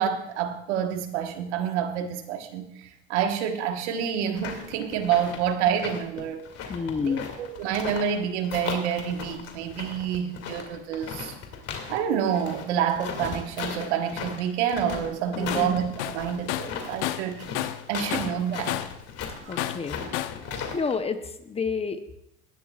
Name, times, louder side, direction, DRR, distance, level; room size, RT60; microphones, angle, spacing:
voice 1, 0.0-6.4 7.0-11.3 11.9-18.8 19.4-19.6 20.4-20.6, right 8 dB, 90° right, 1.5 m, -28 dB
sound 1, 4.4-8.1 8.4-12.0 12.3-20.9, left 6 dB, 45° left, 2.4 m, -37 dB
voice 2, 6.7-7.3 15.4-15.7 19.5-20.0 20.7-22.2, left 5 dB, 20° left, 0.7 m, -29 dB
Tools, 15.5-15.7 16.0-17.9 18.1-19.0 19.6-20.4, left 14 dB, 85° left, 0.8 m, -31 dB
18.5 x 11.5 x 2.4 m
supercardioid pair, 125°, 33 cm